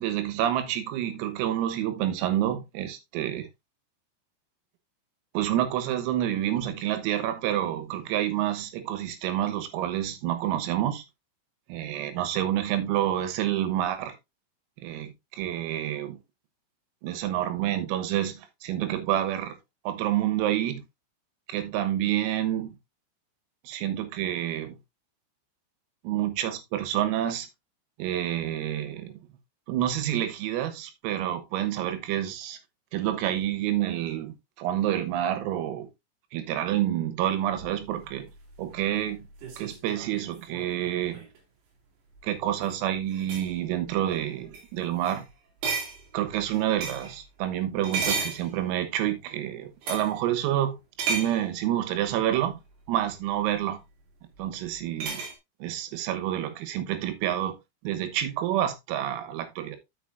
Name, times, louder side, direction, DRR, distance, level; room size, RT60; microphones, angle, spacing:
voice 1, 0.0-3.5 5.4-11.0 11.7-14.1 14.8-15.1 15.4-16.2 17.0-18.3 18.6-19.5 19.9-20.8 21.5-22.7 23.7-24.8 26.1-27.5 28.0-29.1 29.7-32.6 32.9-35.9 36.3-38.3 38.6-39.2 39.6-41.2 42.2-45.2 46.1-52.6 52.9-53.8 54.4-55.2 55.6-57.6 57.9-59.8, right 12 dB, 85° right, 3.9 m, -28 dB
sound 1, 37.6-41.4 42.5-42.7 43.1-43.5 44.1-44.3 44.5-44.7 45.0-45.2 45.6-47.2 47.8-49.0 49.8-50.2 51.0-51.4 53.1-53.2 55.0-55.4, right 5 dB, 55° right, 4.3 m, -34 dB
11.0 x 6.8 x 2.5 m
omnidirectional pair, 6.0 m